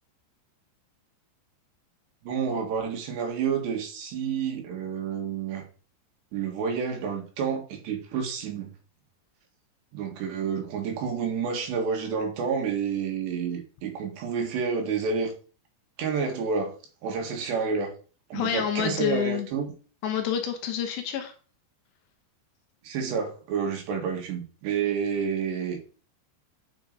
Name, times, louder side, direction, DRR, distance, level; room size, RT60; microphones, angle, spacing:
voice 1, 2.2-5.6 6.3-8.7 9.9-15.3 16.0-16.7 17.0-17.9 18.3-19.7 22.8-25.8, right 6 dB, 70° right, 2 dB, 3.8 m, -29 dB
voice 2, 18.3-19.5 20.0-21.3, left 9 dB, 75° left, 6 dB, 3.1 m, -28 dB
9.2 x 6.0 x 4.0 m, 0.38 s
omnidirectional pair, 5.2 m